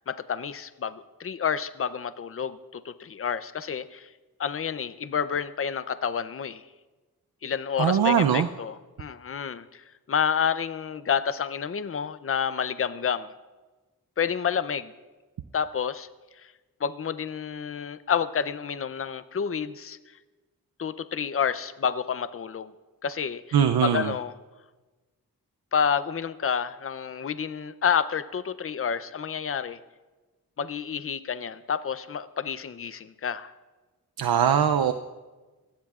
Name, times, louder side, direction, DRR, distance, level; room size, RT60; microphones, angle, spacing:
voice 1, 0.0-4.1 4.4-6.6 7.4-13.3 14.2-14.9 15.5-16.1 16.4-16.5 16.8-20.0 20.8-22.7 23.0-24.4 25.7-29.8 30.6-33.5, left 7 dB, 40° left, 13 dB, 0.5 m, -29 dB
voice 2, 7.8-8.5 23.5-24.1 34.2-34.9, right 8 dB, 90° right, 7 dB, 0.6 m, -21 dB
24.5 x 16.5 x 2.4 m, 1.2 s
wide cardioid pair, 90°, 36 cm